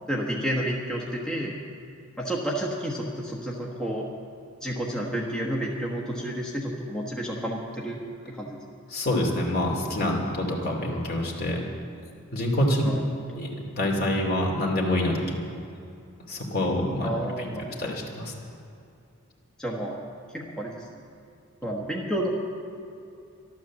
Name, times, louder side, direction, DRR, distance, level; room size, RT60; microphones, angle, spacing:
voice 1, 0.1-1.5 2.2-4.1 4.6-8.0 8.3-8.6 12.8-13.0 13.3-13.5 17.0-18.0 19.6-20.0 20.3-20.9 21.6-22.3, equal, 5° left, -3 dB, 1.3 m, -30 dB
voice 2, 8.9-11.6 12.3-12.8 13.3-13.5 13.7-15.4 16.3-17.1 17.8-18.3, left 1 dB, 50° left, -1 dB, 2.6 m, -26 dB
12.5 x 12.5 x 7.4 m, 2.6 s
head